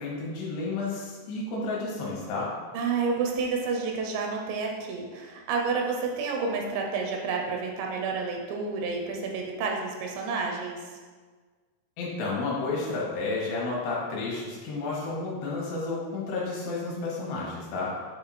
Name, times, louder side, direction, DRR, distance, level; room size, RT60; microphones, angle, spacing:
voice 1, 0.0-2.5 12.0-18.0, left 3 dB, 75° left, -5 dB, 3.1 m, -31 dB
voice 2, 2.7-11.0, right 4 dB, 80° right, 1 dB, 2.9 m, -30 dB
7.7 x 3.6 x 4.1 m, 1.5 s
omnidirectional pair, 5.2 m